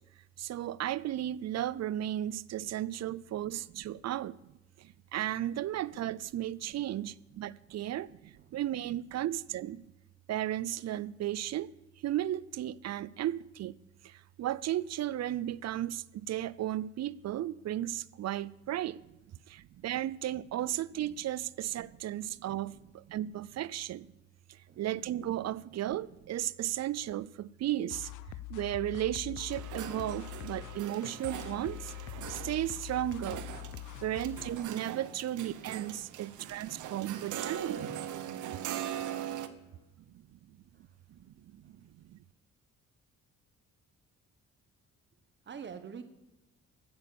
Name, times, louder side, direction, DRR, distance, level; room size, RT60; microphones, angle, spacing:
voice 1, 0.4-9.9 10.3-11.7 12.0-13.8 14.0-19.0 19.5-24.1 24.5-28.1 28.5-33.5 34.0-37.9 38.9-39.0 41.1-41.2 41.5-42.2, right 12 dB, 60° right, 0.5 m, -35 dB
sound 1, 27.9-34.6, left 15 dB, 80° left, 0.6 m, -44 dB
sound 2, 29.5-39.5, right 10 dB, 80° right, 1.1 m, -41 dB
voice 2, 36.1-36.5 39.6-39.9 40.7-41.0 41.3-41.8 45.4-46.0, right 6 dB, 35° right, 1.2 m, -50 dB
15.5 x 8.6 x 7.0 m
cardioid pair, 90°, 30 cm